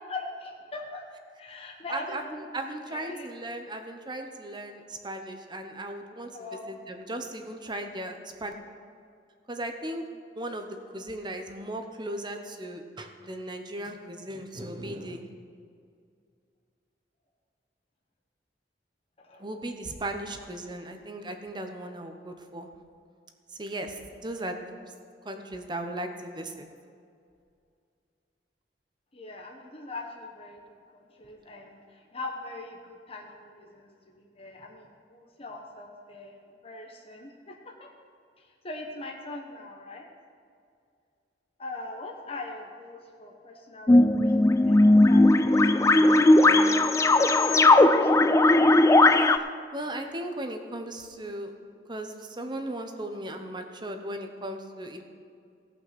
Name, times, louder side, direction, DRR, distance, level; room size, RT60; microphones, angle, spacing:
voice 1, 0.1-2.4 2.6-3.3 6.3-6.8 19.2-19.5 29.1-30.6 30.9-36.3 36.6-37.9 38.4-40.1 41.6-44.4 44.6-46.2 46.7-48.6, left 2 dB, 35° left, 0 dB, 1.0 m, -42 dB
voice 2, 1.9-6.3 6.9-8.5 9.5-10.0 10.4-10.7 10.9-15.3 19.4-22.7 23.6-24.6 25.2-26.7 49.7-51.5 51.9-55.0, right 1 dB, 25° right, 5 dB, 0.9 m, -37 dB
sound 1, 43.9-49.4, left 2 dB, 15° left, 0.3 m, -18 dB
17.0 x 5.8 x 6.0 m, 2.3 s
head